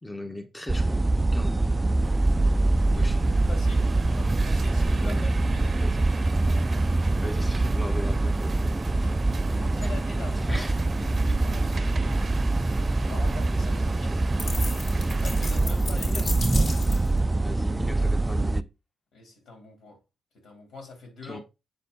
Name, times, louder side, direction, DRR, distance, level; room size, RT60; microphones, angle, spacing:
voice 1, 0.0-1.1 1.3-1.6 2.9-3.4 5.0-5.2 5.8-6.0 7.2-8.7 10.5-10.7 16.0-16.3 17.4-18.7 21.2-21.4, left 1 dB, 10° left, 1.0 m, -38 dB
sound 1, 0.7-18.6, right 2 dB, 20° right, 0.3 m, -24 dB
sound 2, 2.0-15.6, right 4 dB, 40° right, 0.7 m, -42 dB
voice 2, 2.8-6.0 9.0-9.1 9.6-10.7 11.0-12.6 13.0-14.7 15.2-16.7 19.1-20.0 20.3-21.4, left 3 dB, 80° left, 3.2 m, -44 dB
sound 3, 14.4-17.2, left 2 dB, 50° left, 1.9 m, -36 dB
7.7 x 4.3 x 3.9 m
cardioid pair, 90°, 0 cm